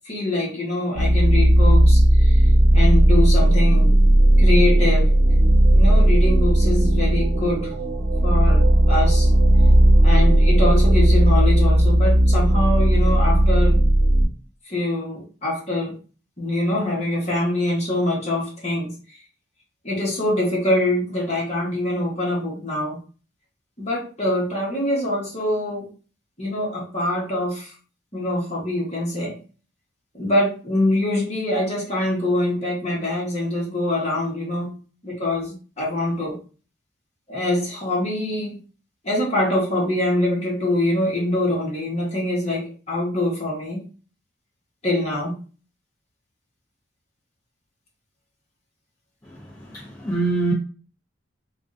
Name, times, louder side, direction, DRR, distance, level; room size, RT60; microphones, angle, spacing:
voice 1, 0.0-4.0 4.4-5.1 5.7-7.7 8.2-9.3 10.0-13.8 14.7-15.9 16.4-18.9 19.8-23.0 23.8-25.9 26.4-27.7 28.1-29.4 30.1-34.8 35.0-36.4 37.3-38.6 39.0-43.8 44.8-45.3, left 1 dB, 35° left, 1.2 m, -24 dB
sound 1, 1.0-14.3, right 1 dB, 80° right, 0.8 m, -15 dB
voice 2, 49.2-50.5, right 3 dB, 20° left, 0.6 m, -25 dB
3.5 x 2.5 x 2.5 m
head